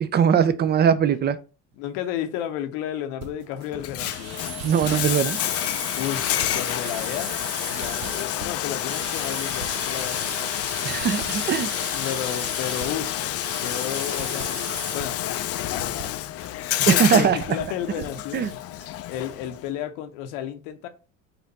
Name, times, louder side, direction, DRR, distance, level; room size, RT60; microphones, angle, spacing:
voice 1, 0.0-1.4 4.6-5.4 10.8-11.9 16.9-17.4 18.3-18.5, right 8 dB, 25° right, 0.4 m, -21 dB
voice 2, 1.8-4.4 6.0-7.4 7.7-10.5 11.7-14.6 14.9-20.9, left 10 dB, 70° left, 0.8 m, -33 dB
sound 1, 3.2-10.1 10.4-11.7 12.0-18.9, right 9 dB, 55° right, 0.9 m, -45 dB
Bathtub (filling or washing), 3.7-19.7, left 12 dB, 40° left, 0.4 m, -29 dB
sound 2, 4.0-15.0, right 4 dB, 80° right, 1.5 m, -37 dB
4.2 x 2.6 x 4.0 m
hypercardioid pair, 70°, 40 cm